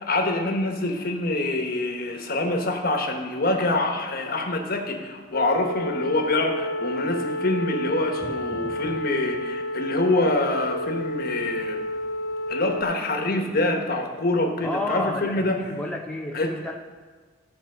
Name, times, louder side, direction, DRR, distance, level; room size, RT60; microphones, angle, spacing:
voice 1, 0.0-11.8 12.5-15.7 16.3-16.5, left 2 dB, 50° left, 3 dB, 1.2 m, -25 dB
sound 1, 5.3-12.8, left 1 dB, 70° left, 0.5 m, -30 dB
voice 2, 8.2-9.0 14.6-16.7, left 1 dB, 5° left, 1 dB, 0.5 m, -32 dB
13.0 x 4.4 x 6.7 m, 1.5 s
head